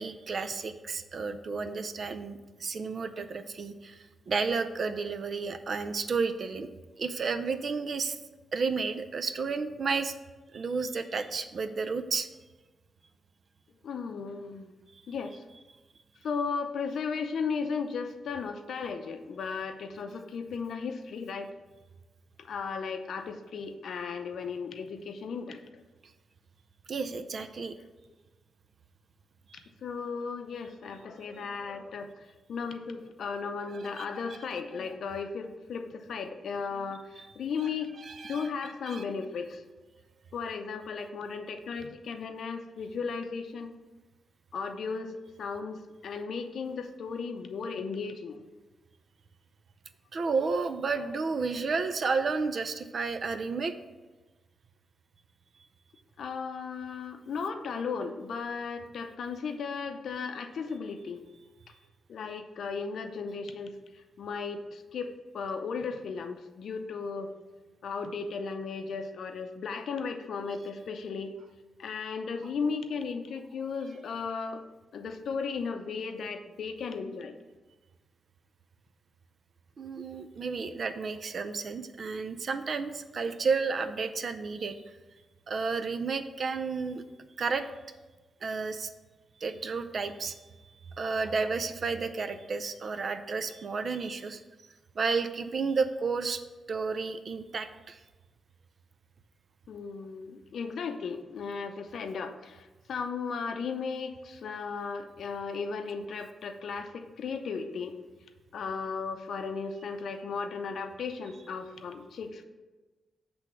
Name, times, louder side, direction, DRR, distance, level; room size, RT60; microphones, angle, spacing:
voice 1, 0.0-6.7 7.0-8.2 8.5-10.1 10.5-12.3 26.9-27.7 29.5-29.7 34.0-34.1 38.0-38.5 38.9-39.0 50.1-53.7 72.6-72.7 79.8-84.7 85.5-87.0 87.4-87.7 88.4-88.9 89.4-90.4 91.0-94.4 95.0-96.4 96.7-98.0, right 4 dB, 45° right, 9 dB, 0.4 m, -32 dB
voice 2, 13.8-14.7 15.1-15.4 16.2-21.5 22.4-25.6 27.6-27.7 29.5-37.9 38.3-39.6 40.3-43.7 44.5-48.4 50.9-51.0 56.2-61.2 62.1-67.3 67.8-71.3 71.8-74.6 74.9-77.3 99.7-108.0 108.5-112.4, left 5 dB, 65° left, 6 dB, 0.6 m, -36 dB
7.9 x 3.4 x 5.8 m, 1.2 s
wide cardioid pair, 160°, 0 cm